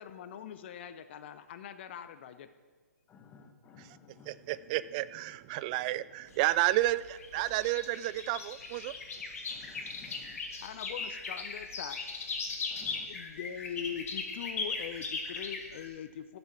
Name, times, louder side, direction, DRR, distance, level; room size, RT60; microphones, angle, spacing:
voice 1, 0.0-2.5 10.6-12.0 12.7-16.4, left 9 dB, 40° left, 11 dB, 0.6 m, -42 dB
voice 2, 3.1-4.3 9.5-10.4 12.7-13.1, left 6 dB, 15° left, 6 dB, 1.1 m, -55 dB
voice 3, 4.3-8.9, right 16 dB, 30° right, 17 dB, 0.3 m, -31 dB
sound 1, 6.3-15.9, left 4 dB, 60° left, 2.1 m, -39 dB
13.5 x 6.8 x 5.8 m, 1.4 s
hypercardioid pair, 135°, 9 cm